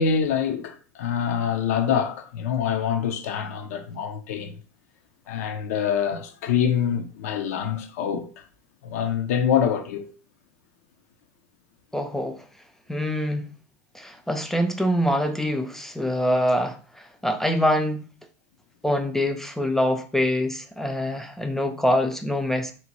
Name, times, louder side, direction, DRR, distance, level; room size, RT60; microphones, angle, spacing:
voice 1, 0.0-4.6 5.3-8.4 8.8-10.1, left 7 dB, 75° left, 0.5 m, -25 dB
voice 2, 11.9-12.5 12.9-13.5 13.9-18.1 18.8-22.7, equal, 5° left, 0.4 m, -25 dB
2.8 x 2.1 x 2.9 m
hypercardioid pair, 105°, 8 cm